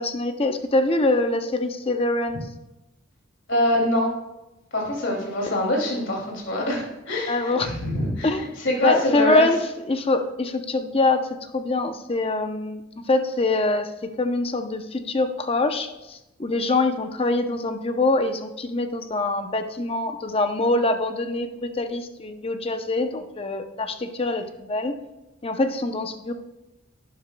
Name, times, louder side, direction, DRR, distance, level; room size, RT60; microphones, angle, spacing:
voice 1, 0.0-2.4 7.3-7.7 8.2-8.4 8.8-9.6 9.8-12.8 13.1-13.9 14.2-24.9 25.4-26.3, left 2 dB, 30° left, 7 dB, 0.6 m, -24 dB
voice 2, 3.5-4.1 4.7-8.3 8.6-9.5, left 1 dB, 65° left, -1 dB, 2.6 m, -24 dB
11.5 x 10.0 x 2.3 m, 0.98 s
head